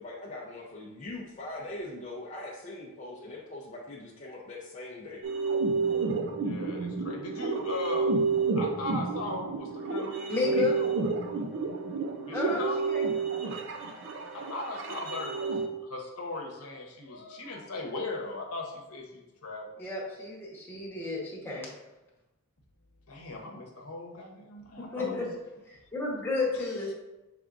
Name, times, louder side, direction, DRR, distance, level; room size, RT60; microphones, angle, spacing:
voice 1, 0.0-5.2, left 2 dB, 35° left, -5 dB, 0.5 m, -41 dB
sound 1, 5.2-15.7, right 4 dB, 60° right, 0.5 m, -30 dB
voice 2, 6.4-8.1 8.5-10.9 12.3-12.8 14.3-15.4 15.8-19.8 23.1-25.3, left 2 dB, 85° left, 1 dB, 0.9 m, -38 dB
voice 3, 10.3-10.8 12.3-13.1 19.8-21.7 24.8-26.9, left 3 dB, 10° left, -5 dB, 1.0 m, -32 dB
5.9 x 3.5 x 2.5 m, 1.0 s
head